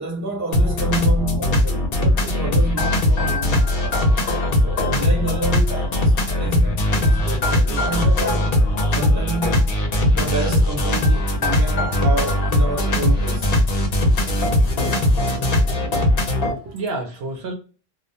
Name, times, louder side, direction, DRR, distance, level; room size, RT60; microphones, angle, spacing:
voice 1, 0.0-4.1 4.6-8.5 8.9-9.7 10.1-13.6, right 2 dB, 15° right, 0.8 m, -29 dB
sound 1, 0.5-16.5, left 1 dB, 65° left, 0.8 m, -19 dB
voice 2, 16.1-17.5, right 2 dB, 75° right, 0.8 m, -31 dB
2.3 x 2.1 x 2.6 m
omnidirectional pair, 1.1 m